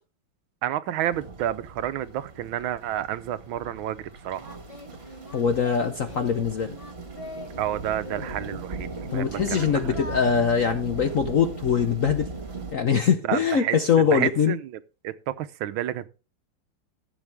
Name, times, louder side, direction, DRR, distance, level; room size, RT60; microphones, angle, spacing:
voice 1, 0.6-4.6 7.6-9.8 13.3-13.8 14.1-14.6 15.0-16.1, right 11 dB, 75° right, 1.4 m, -30 dB
sound 1, 1.1-12.8, right 3 dB, 30° right, 1.7 m, -38 dB
Singing, 3.8-3.9 4.4-7.6 7.9-10.2, left 1 dB, 25° left, 0.7 m, -42 dB
voice 2, 5.3-6.8 9.1-12.3 12.7-14.6, left 6 dB, 60° left, 0.9 m, -23 dB
15.0 x 7.0 x 3.4 m
omnidirectional pair, 2.3 m